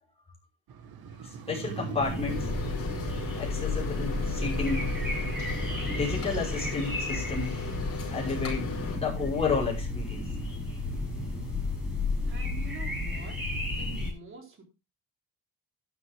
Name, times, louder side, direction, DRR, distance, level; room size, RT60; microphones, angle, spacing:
Motorcycle, 0.7-10.8 11.1-11.2, right 5 dB, 85° right, 2.1 m, -41 dB
voice 1, 1.2-2.5 3.3-4.8 5.9-7.6 8.1-10.3, left 4 dB, 15° left, -4 dB, 5.6 m, -32 dB
sound 1, 2.0-14.1, left 2 dB, 5° right, 6.6 m, -32 dB
sound 2, 2.3-9.0, left 4 dB, 40° left, 5.5 m, -38 dB
voice 2, 12.3-13.5 13.8-14.6, right 4 dB, 35° right, 2 dB, 4.1 m, -46 dB
12.0 x 10.5 x 3.7 m, 0.29 s
cardioid pair, 175°, 36 cm